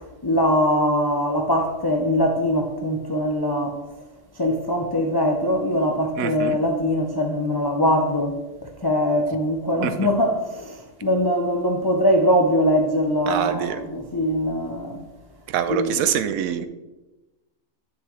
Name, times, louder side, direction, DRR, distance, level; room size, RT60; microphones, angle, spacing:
voice 1, 0.2-3.8 4.4-8.4 8.8-15.0 15.7-16.1, equal, 35° left, 0.4 m, -22 dB
voice 2, 6.2-6.6 9.8-9.9 13.3-13.8 15.5-16.7, right 9 dB, 80° right, 1.0 m, -25 dB
9.5 x 6.5 x 3.1 m
omnidirectional pair, 1.5 m